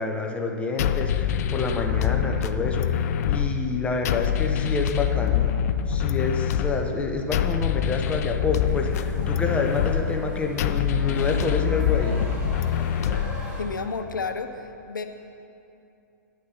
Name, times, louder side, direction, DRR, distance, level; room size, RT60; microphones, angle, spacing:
voice 1, 0.0-5.6 5.9-12.2, left 3 dB, 10° left, 2 dB, 0.8 m, -28 dB
sound 1, 0.8-13.8, left 9 dB, 55° left, 0.4 m, -25 dB
sound 2, 8.6-13.6, left 1 dB, 10° right, 2.2 m, -39 dB
voice 2, 13.6-15.0, left 4 dB, 90° left, 7 dB, 0.7 m, -31 dB
9.7 x 6.6 x 5.4 m, 2.7 s
hypercardioid pair, 125°, 10 cm